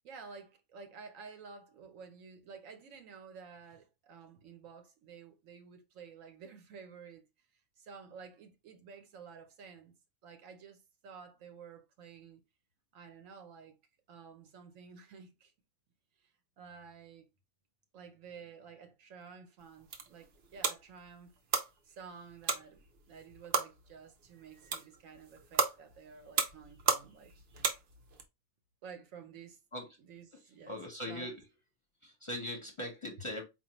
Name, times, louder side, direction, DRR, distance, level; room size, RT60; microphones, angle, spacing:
voice 1, 0.0-7.3 7.8-9.9 10.2-10.8 11.0-12.4 12.9-13.8 14.1-15.5 16.2-16.3 16.6-17.3 17.9-21.3 21.8-27.3 28.8-29.6 30.0-31.3, right 6 dB, 80° right, 1.1 m, -52 dB
sound 1, 19.6-28.2, right 5 dB, 60° right, 0.8 m, -36 dB
voice 2, 30.7-31.3 32.0-33.4, left 1 dB, 30° left, 0.7 m, -40 dB
4.4 x 2.5 x 2.9 m
omnidirectional pair, 1.3 m